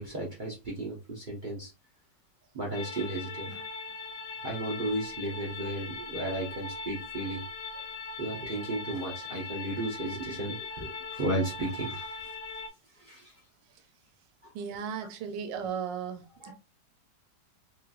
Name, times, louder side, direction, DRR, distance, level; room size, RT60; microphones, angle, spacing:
voice 1, 0.0-1.7 2.5-3.6 4.4-7.4 8.2-12.1 13.0-13.3 14.4-14.5 16.4-16.5, right 1 dB, 45° right, 0.6 m, -34 dB
sound 1, 2.7-12.7, left 4 dB, 60° left, 0.9 m, -40 dB
voice 2, 14.5-16.5, right 7 dB, 80° right, 1.3 m, -36 dB
3.1 x 3.0 x 2.3 m
omnidirectional pair, 2.0 m